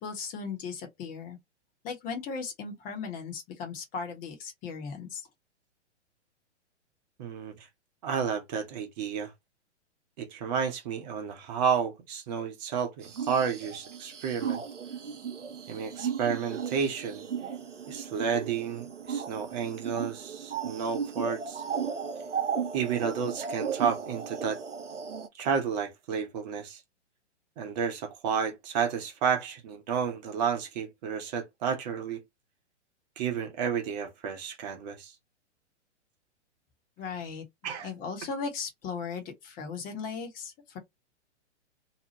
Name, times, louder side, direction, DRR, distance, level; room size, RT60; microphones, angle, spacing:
voice 1, 0.0-1.4 1.8-5.3 37.0-37.4 37.8-40.8, left 5 dB, 25° left, 1.0 m, -37 dB
voice 2, 7.2-7.7 8.0-9.3 10.2-14.6 15.7-17.2 17.9-21.6 22.7-24.6 25.4-26.8 27.6-32.2 33.2-35.1 37.6-37.9, right 7 dB, 35° right, 1.0 m, -31 dB
sound 1, 13.0-25.3, right 7 dB, 85° right, 0.6 m, -35 dB
2.9 x 2.3 x 2.9 m
figure-of-eight pair, 110°, 36 cm